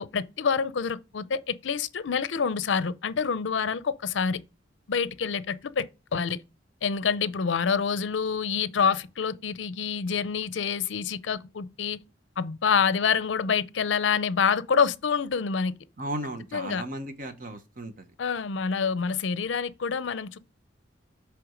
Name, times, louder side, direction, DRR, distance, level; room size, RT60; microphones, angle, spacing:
voice 1, 0.0-4.4 4.9-6.4 6.8-12.0 12.4-15.7 16.5-16.8 18.2-20.4, left 6 dB, 75° left, 0.5 m, -27 dB
voice 2, 16.0-18.1, right 1 dB, 45° right, 0.9 m, -35 dB
7.8 x 3.4 x 5.1 m
head